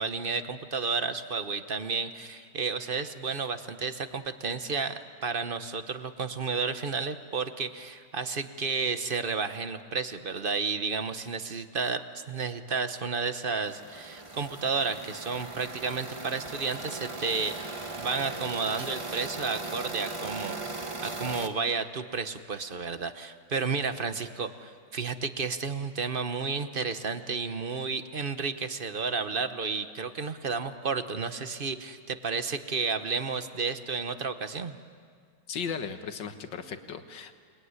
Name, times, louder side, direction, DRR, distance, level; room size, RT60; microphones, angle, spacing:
voice 1, 0.0-34.7, right 4 dB, 35° right, 10 dB, 1.0 m, -32 dB
sound 1, 13.6-21.5, right 3 dB, 20° right, 1.3 m, -38 dB
voice 2, 35.5-37.3, left 6 dB, 90° left, 8 dB, 2.1 m, -36 dB
29.0 x 21.0 x 9.7 m, 2.1 s
omnidirectional pair, 1.9 m